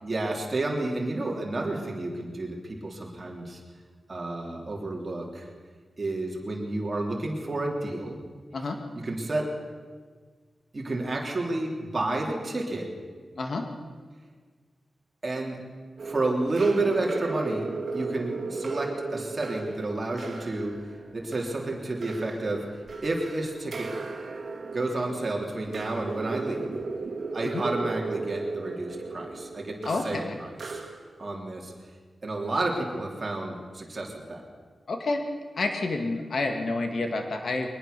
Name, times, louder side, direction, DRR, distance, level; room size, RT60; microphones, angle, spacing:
voice 1, 0.0-3.6 4.1-5.5 6.0-8.2 8.9-9.5 10.7-12.9 15.2-15.6 16.0-20.8 21.1-22.7 23.0-23.9 24.7-26.7 27.3-30.8 31.2-31.7 32.2-34.4, right 2 dB, 30° right, -1 dB, 3.4 m, -30 dB
voice 2, 13.4-13.7 27.5-27.6 29.8-30.4 34.9-35.2 35.6-37.7, left 3 dB, 55° left, 4 dB, 2.1 m, -29 dB
sound 1, 16.0-31.3, right 4 dB, 50° right, 2.6 m, -36 dB
22.0 x 20.0 x 6.9 m, 1.5 s
wide cardioid pair, 180°, 0 cm